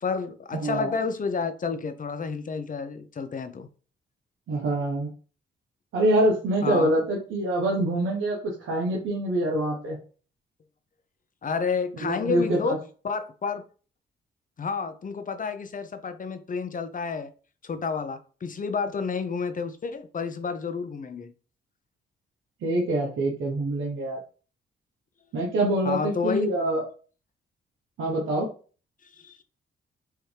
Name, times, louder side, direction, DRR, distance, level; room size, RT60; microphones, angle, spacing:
voice 1, 0.0-3.7 6.6-6.9 11.4-12.8 13.0-13.6 14.6-17.3 17.6-21.3 25.8-26.5 29.0-29.4, left 5 dB, 40° left, 0.7 m, -30 dB
voice 2, 0.5-1.0 4.5-5.1 5.9-10.0 12.0-12.8 22.6-24.2 25.3-26.8 28.0-28.5, right 1 dB, 70° right, 1.1 m, -25 dB
4.8 x 3.0 x 3.3 m
supercardioid pair, 60°, 21 cm